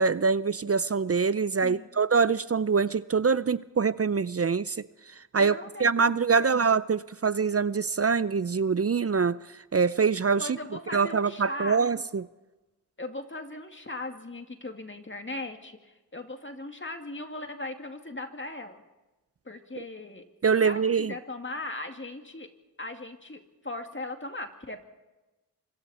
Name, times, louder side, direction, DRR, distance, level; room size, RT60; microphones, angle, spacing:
voice 1, 0.0-4.9 5.2-9.4 9.7-10.5 10.9-12.2 20.4-21.1, right 5 dB, 35° right, 17 dB, 0.6 m, -24 dB
voice 2, 5.4-6.6 10.4-11.9 13.0-18.8 19.4-20.3 20.6-22.5 22.8-24.8, left 2 dB, 25° left, 5 dB, 2.4 m, -39 dB
26.0 x 23.5 x 4.3 m, 1.1 s
cardioid pair, 40°, 42 cm